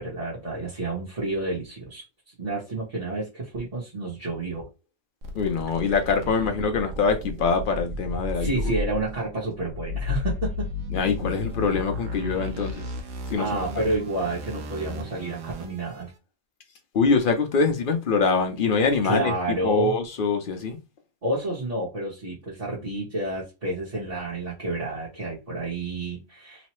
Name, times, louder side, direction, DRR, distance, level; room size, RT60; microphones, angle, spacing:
voice 1, 0.0-4.6 5.8-5.9 8.4-10.7 12.7-12.8 13.3-16.1 19.0-19.9 21.2-26.7, right 2 dB, 35° right, 0.9 m, -30 dB
sound 1, 5.2-16.0, left 2 dB, 90° right, 1.1 m, -33 dB
voice 2, 5.3-8.8 10.9-12.9 13.3-13.8 16.9-19.3 19.6-20.8, left 4 dB, 55° left, 0.6 m, -24 dB
3.0 x 2.0 x 2.9 m
omnidirectional pair, 1.4 m